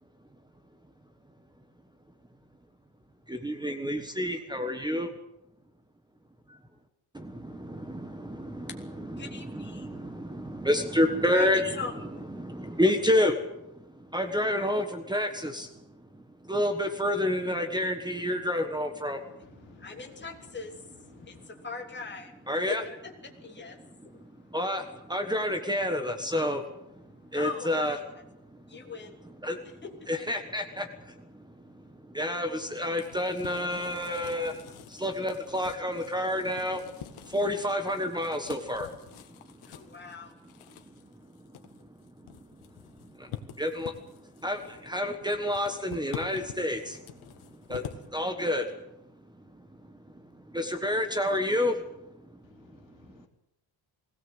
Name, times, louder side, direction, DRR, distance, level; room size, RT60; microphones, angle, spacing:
voice 1, 3.3-5.1 7.7-11.8 12.3-13.4 14.1-15.7 16.5-19.2 22.5-22.8 24.5-24.8 25.1-26.6 27.3-28.0 29.4-29.6 30.1-30.8 32.1-34.5 35.0-36.8 37.3-38.9 43.6-43.9 44.4-44.6 44.9-46.8 47.7-47.8 48.1-48.6 50.5-51.7, left 1 dB, 10° right, 6 dB, 1.4 m, -28 dB
voice 2, 9.0-9.9 11.3-11.5 11.8-11.9 12.2-12.3 19.6-22.3 22.7-22.9 23.2-24.2 27.3-28.0 28.7-29.2 29.8-29.9 39.6-40.3, left 4 dB, 20° left, 2 dB, 2.9 m, -40 dB
voice 3, 19.5-20.3 20.6-21.5 52.4-53.3, left 6 dB, 70° left, 4 dB, 3.3 m, -58 dB
sound 1, 32.6-48.1, left 10 dB, 90° left, 1.9 m, -47 dB
20.5 x 17.5 x 8.1 m, 0.82 s
wide cardioid pair, 175°, 48 cm